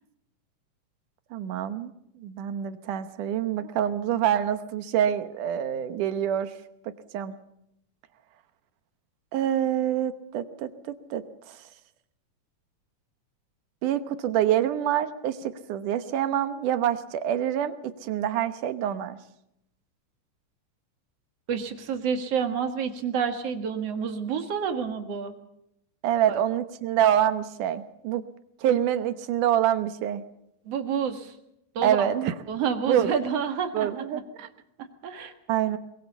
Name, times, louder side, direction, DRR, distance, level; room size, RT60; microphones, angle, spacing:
voice 1, 1.3-1.9 2.2-6.5 7.1-7.3 9.3-10.7 11.1-11.2 13.8-19.2 26.0-28.2 28.6-30.2 31.8-32.3 32.9-33.1 33.7-34.5 35.5-35.8, right 10 dB, 75° right, 11 dB, 2.6 m, -26 dB
voice 2, 21.5-25.3 26.3-26.4 30.7-31.3 31.8-32.1 32.5-34.2 34.8-35.3, right 7 dB, 55° right, 7 dB, 2.7 m, -29 dB
22.0 x 22.0 x 7.0 m, 0.80 s
omnidirectional pair, 3.7 m